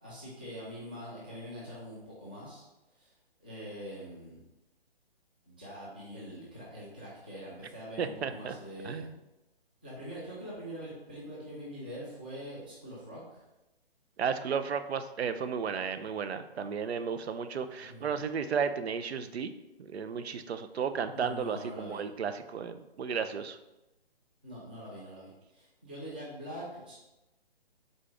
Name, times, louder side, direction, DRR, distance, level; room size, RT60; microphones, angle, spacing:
voice 1, 0.0-2.7 2.9-3.1 3.4-4.4 5.5-9.1 9.8-13.4 17.9-18.1 21.1-22.0 24.4-26.9, equal, 10° right, -7 dB, 0.4 m, -44 dB
voice 2, 8.0-8.5 8.8-9.1 14.2-19.5 19.8-23.6, right 6 dB, 80° right, 10 dB, 0.5 m, -33 dB
3.9 x 3.6 x 3.4 m, 0.98 s
figure-of-eight pair, 145°, 31 cm